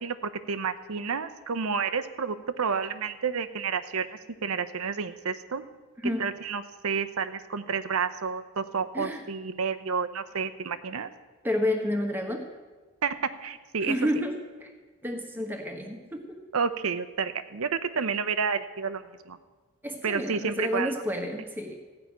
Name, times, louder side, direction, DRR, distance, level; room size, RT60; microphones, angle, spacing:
voice 1, 0.0-4.1 4.4-5.6 6.2-11.1 13.0-13.9 16.5-19.0 19.3-19.4 20.0-20.9, right 5 dB, 75° right, 10 dB, 0.7 m, -30 dB
voice 2, 11.4-12.4 13.8-14.3 14.6-14.7 15.0-16.4 19.8-21.8, left 1 dB, 10° right, 3 dB, 1.2 m, -30 dB
15.0 x 5.8 x 9.3 m, 1.3 s
head